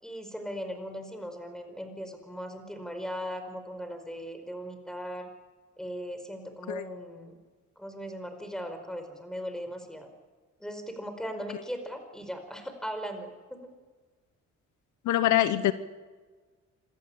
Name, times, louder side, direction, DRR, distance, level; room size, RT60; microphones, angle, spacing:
voice 1, 0.0-5.3 5.8-7.4 7.8-10.1 10.6-13.7, equal, ahead, 7 dB, 4.9 m, -38 dB
voice 2, 15.1-15.7, left 13 dB, 75° left, 13 dB, 1.1 m, -24 dB
27.0 x 14.0 x 8.7 m, 1.4 s
cardioid pair, 90°, 30 cm